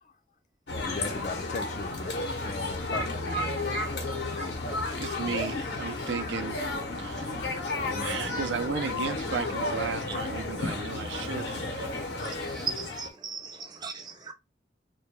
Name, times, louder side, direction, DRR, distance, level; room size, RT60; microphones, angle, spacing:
sound 1, 0.7-13.1, left 2 dB, 70° left, 0.7 m, -32 dB
voice 1, 0.9-2.2 2.4-3.3 4.4-4.6 5.2-5.4 7.9-8.4, left 3 dB, 40° left, 0.3 m, -38 dB
sound 2, 1.8-4.5 7.1-9.4, right 2 dB, 65° right, 0.8 m, -48 dB
voice 2, 5.0-6.6 7.0-7.3 8.0-11.9, right 5 dB, 90° right, 0.4 m, -34 dB
voice 3, 12.2-14.3, right 5 dB, 25° right, 0.4 m, -38 dB
2.2 x 2.2 x 2.9 m
head